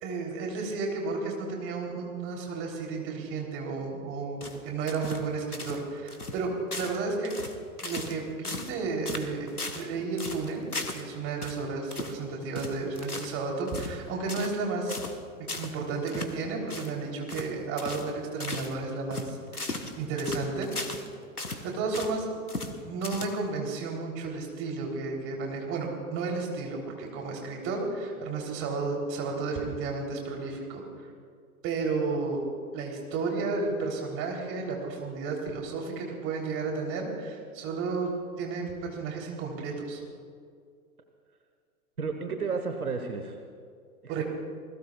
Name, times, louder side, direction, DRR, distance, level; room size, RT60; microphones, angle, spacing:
voice 1, 0.0-7.3 7.8-9.5 9.7-10.7 10.9-15.0 15.4-19.7 19.9-20.7 21.6-22.3 22.8-30.8 31.6-32.5 32.7-38.1 38.4-40.0 44.1-44.2, right 4 dB, 30° right, 0 dB, 3.6 m, -32 dB
sound 1, 4.4-5.3 5.5-5.8 6.1-6.4 6.7-7.0 7.2-8.2 8.4-8.8 9.0-9.9 10.2-11.1 11.4-11.6 11.9-12.2 12.5-13.4 13.7-14.0 14.3-14.6 14.9-15.2 15.5-15.7 16.1-16.3 16.7-16.9 17.3-17.5 17.8-18.1 18.4-18.7 19.1-21.1 21.4-22.2 22.5-22.7 23.0-23.6, left 2 dB, 85° left, 1.4 m, -37 dB
voice 2, 42.0-43.4 44.0-44.2, right 5 dB, 75° right, 6 dB, 1.5 m, -32 dB
28.5 x 20.5 x 2.4 m, 2.2 s
figure-of-eight pair, 105°, 44 cm